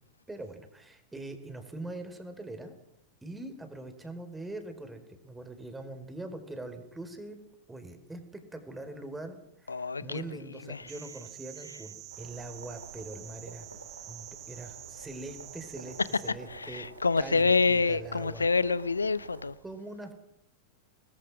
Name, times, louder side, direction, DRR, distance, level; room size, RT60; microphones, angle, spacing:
voice 1, 0.3-2.7 3.2-7.4 7.7-13.7 14.1-16.9 17.2-18.5 19.6-20.1, right 2 dB, 10° right, 4.6 m, -42 dB
voice 2, 9.7-10.2 10.7-10.8 16.5-19.5, left 4 dB, 75° left, 0.9 m, -27 dB
sound 1, 10.9-16.3, right 14 dB, 35° right, 1.4 m, -47 dB
sound 2, 12.1-19.5, right 3 dB, 75° right, 3.6 m, -49 dB
26.5 x 20.0 x 6.2 m
figure-of-eight pair, 90°, 0 cm